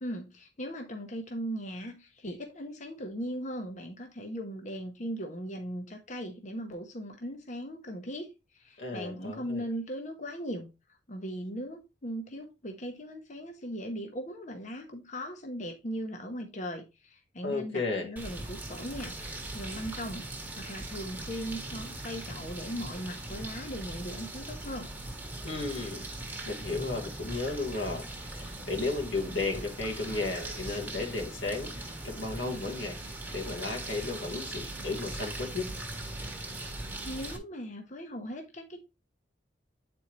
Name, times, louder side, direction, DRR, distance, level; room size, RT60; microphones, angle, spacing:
voice 1, 0.0-10.7 11.1-24.9 37.0-38.8, equal, 40° left, 0.9 m, -38 dB
voice 2, 8.8-9.6 17.4-18.1 25.4-26.0 26.5-33.0 33.3-35.7, left 3 dB, 90° left, 1.9 m, -34 dB
sound 1, 18.2-37.4, right 2 dB, 10° right, 1.2 m, -40 dB
8.5 x 4.3 x 3.1 m
head